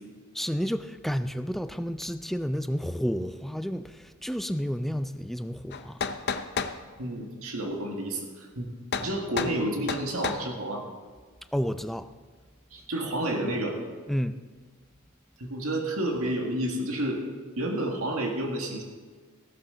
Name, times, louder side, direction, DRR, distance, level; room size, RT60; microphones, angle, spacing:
voice 1, 0.3-6.0 11.5-12.1 14.1-14.4, equal, ahead, 10 dB, 0.4 m, -31 dB
sound 1, 5.7-6.8 8.9-9.1 9.4-9.6 9.9-10.4, left 5 dB, 50° left, 0.7 m, -30 dB
voice 2, 7.0-8.7 9.0-10.8 12.7-13.8 15.4-17.2 17.6-18.8, right 1 dB, 85° right, 1 dB, 1.9 m, -30 dB
15.0 x 12.5 x 3.9 m, 1.5 s
head